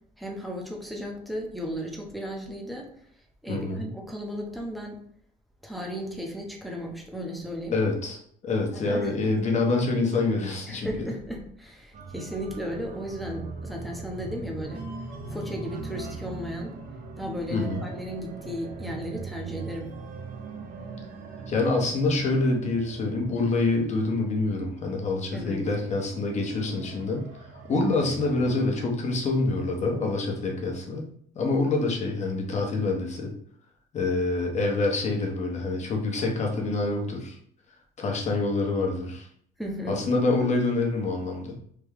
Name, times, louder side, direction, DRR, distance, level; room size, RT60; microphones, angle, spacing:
voice 1, 0.2-2.9 3.4-5.0 5.6-7.8 8.7-9.1 10.7-14.9 15.3-16.7 17.2-19.9 25.3-25.7 39.6-40.0, equal, ahead, 0 dB, 0.7 m, -35 dB
voice 2, 3.5-3.9 7.7-8.2 8.4-11.1 17.5-17.8 21.5-27.3 27.7-31.1 31.3-33.3 33.9-37.4 38.0-39.3 39.9-41.6, left 3 dB, 45° left, 1 dB, 0.9 m, -26 dB
sound 1, 11.9-28.6, right 3 dB, 55° right, 0.7 m, -41 dB
3.5 x 2.2 x 3.4 m, 0.64 s
cardioid pair, 110°, 17 cm